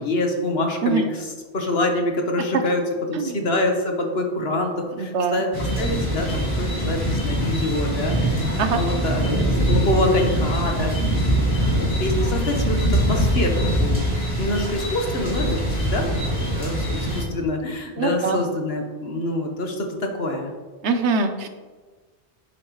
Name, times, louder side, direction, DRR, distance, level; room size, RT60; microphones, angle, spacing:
voice 1, 0.0-2.8 3.1-5.5 5.8-8.4 8.7-11.2 11.8-20.5, left 1 dB, 65° left, 3 dB, 1.5 m, -26 dB
voice 2, 5.0-5.4 8.6-8.8 18.0-18.4 20.8-21.5, right 4 dB, 90° right, 7 dB, 1.2 m, -23 dB
sound 1, 5.5-17.2, equal, 30° left, 2.9 m, -23 dB
10.5 x 7.9 x 3.2 m, 1.3 s
omnidirectional pair, 1.1 m